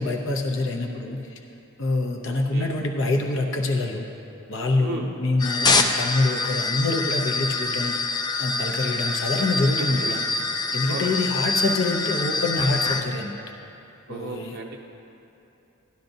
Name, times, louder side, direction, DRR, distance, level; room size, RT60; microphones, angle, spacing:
voice 1, 0.0-1.4 1.8-4.0 4.5-7.9 8.4-10.2 10.7-13.4 14.1-14.6, left 2 dB, 60° left, 2 dB, 0.7 m, -25 dB
voice 2, 2.2-2.8 4.8-5.1 9.8-10.1 10.9-11.2 14.1-14.8, right 3 dB, 45° right, 0 dB, 0.5 m, -35 dB
sound 1, 5.4-13.0, left 3 dB, 20° left, 0.3 m, -25 dB
13.0 x 11.5 x 2.6 m, 2.8 s
head